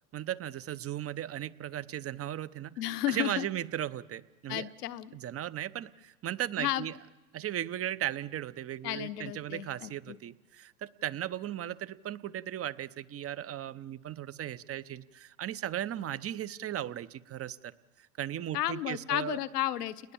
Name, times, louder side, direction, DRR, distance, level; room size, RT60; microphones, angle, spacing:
voice 1, 0.1-2.7 3.1-4.7 5.1-6.9 7.3-17.7 18.0-19.4, right 11 dB, 30° right, 17 dB, 0.8 m, -36 dB
voice 2, 2.8-3.5 4.5-5.2 6.6-6.9 8.8-10.2 18.5-20.1, left 14 dB, 85° left, 13 dB, 1.2 m, -33 dB
29.5 x 20.0 x 7.1 m, 1.1 s
hypercardioid pair, 95°, 46 cm